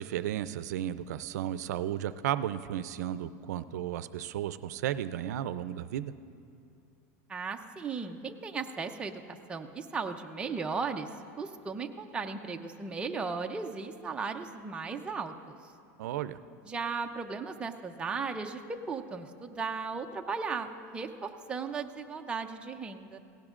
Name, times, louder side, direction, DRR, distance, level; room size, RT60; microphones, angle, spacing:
voice 1, 0.0-6.1 16.0-16.4, right 11 dB, 90° right, 14 dB, 0.4 m, -34 dB
voice 2, 7.3-9.2 9.5-11.1 11.4-15.6 16.6-23.2, right 5 dB, 10° right, 4 dB, 0.5 m, -36 dB
17.5 x 15.5 x 2.5 m, 2.5 s
supercardioid pair, 150°, 9 cm